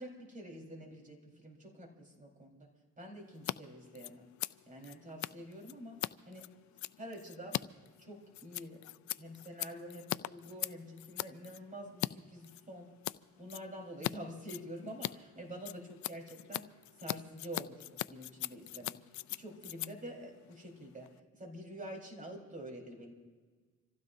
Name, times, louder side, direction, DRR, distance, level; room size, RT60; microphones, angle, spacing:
voice 1, 0.0-2.7 3.0-4.3 4.7-6.0 6.2-6.4 7.0-7.6 8.0-8.8 9.2-12.9 13.4-16.7 17.0-19.0 19.3-23.1, equal, 25° right, 0 dB, 4.4 m, -47 dB
Scissors, 3.3-3.6 3.8-12.1 12.4-13.2 13.5-14.1 14.4-21.2, left 16 dB, 70° left, 0.4 m, -41 dB
27.5 x 15.5 x 2.7 m, 1.5 s
cardioid pair, 90°, 30 cm